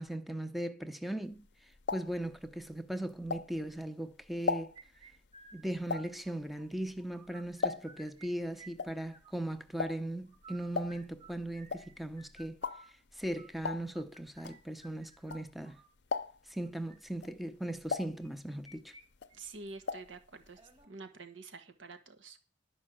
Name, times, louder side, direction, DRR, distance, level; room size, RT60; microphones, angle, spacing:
voice 1, 0.0-1.4 1.9-4.7 5.5-12.6 13.1-15.8 16.5-18.9, right 1 dB, ahead, 0.7 m, -38 dB
sound 1, 1.3-3.9 4.2-8.2 8.4-15.7 16.0-16.6 17.1-18.8 19.1-20.2 20.4-20.5 20.8-20.9, left 4 dB, 65° left, 0.6 m, -38 dB
sound 2, 4.8-6.7 7.0-8.3 8.5-9.6 10.3-15.9 16.7-17.0 18.2-19.0 19.3-19.4 19.8-19.9 20.5-20.9, right 3 dB, 30° right, 1.7 m, -56 dB
voice 2, 19.3-20.6 20.9-22.4, right 3 dB, 80° right, 1.5 m, -48 dB
11.5 x 5.5 x 7.6 m
head